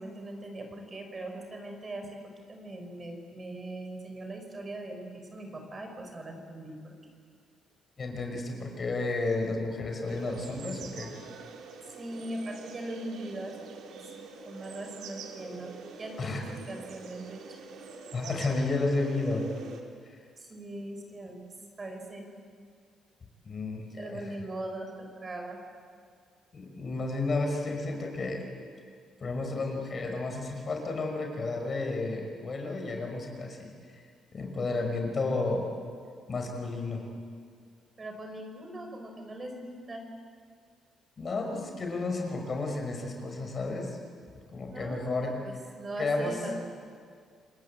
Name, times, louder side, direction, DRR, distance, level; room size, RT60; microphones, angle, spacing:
voice 1, 0.0-2.2 2.5-7.1 12.0-13.6 13.9-14.0 14.4-15.7 16.0-17.4 20.4-21.4 21.8-22.3 24.0-25.6 38.0-40.0 44.6-45.1 45.4-46.6, right 1 dB, 30° right, 4 dB, 5.8 m, -40 dB
voice 2, 8.0-11.1 16.2-16.4 18.1-19.5 23.4-24.2 26.5-28.4 29.2-34.0 34.3-35.7 36.3-37.1 41.2-44.0 44.5-45.3 46.0-46.4, left 3 dB, 40° left, 3 dB, 5.9 m, -32 dB
sound 1, 10.1-19.8, right 4 dB, 80° right, 3.2 m, -45 dB
28.5 x 20.5 x 8.8 m, 2.1 s
cardioid pair, 90°, 0 cm